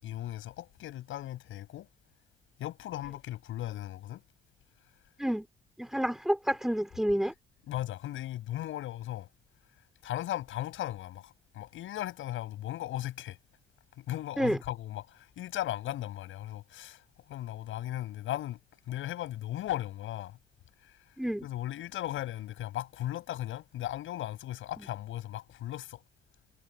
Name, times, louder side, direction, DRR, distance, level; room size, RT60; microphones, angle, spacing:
voice 1, 0.0-1.9 2.6-4.2 7.7-9.3 10.0-13.4 14.0-17.0 17.3-18.6 18.9-20.4 21.4-26.0, left 13 dB, 85° left, 7.8 m, -37 dB
voice 2, 5.8-7.3 14.4-14.6 21.2-21.5 24.8-24.9, equal, ahead, 3.1 m, -29 dB
cardioid pair, 90°, 20 cm